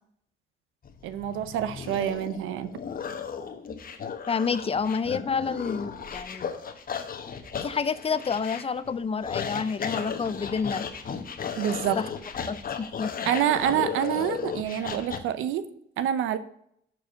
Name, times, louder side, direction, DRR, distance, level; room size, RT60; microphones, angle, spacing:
sound 1, 0.8-15.2, left 6 dB, 45° left, 1.0 m, -35 dB
voice 1, 1.0-2.7 11.6-12.0 13.3-15.6 16.0-16.4, right 10 dB, 90° right, 13 dB, 0.7 m, -27 dB
voice 2, 4.3-6.5 7.6-10.9 12.0-12.1 12.5-13.1, left 5 dB, 30° left, 14 dB, 0.5 m, -29 dB
6.7 x 4.7 x 6.3 m, 0.70 s
cardioid pair, 90°, 20 cm